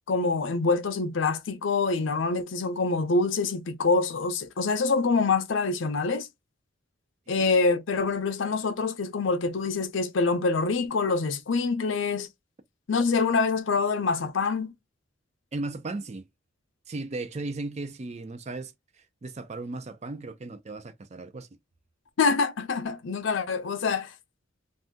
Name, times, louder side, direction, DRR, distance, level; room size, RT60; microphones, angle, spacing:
voice 1, 0.1-6.3 7.3-12.3 12.9-14.7 22.2-24.1, left 4 dB, 70° left, 0.5 m, -25 dB
voice 2, 15.5-16.3 16.9-18.7 19.0-21.5, right 2 dB, 35° right, 0.4 m, -36 dB
2.7 x 2.2 x 3.5 m
head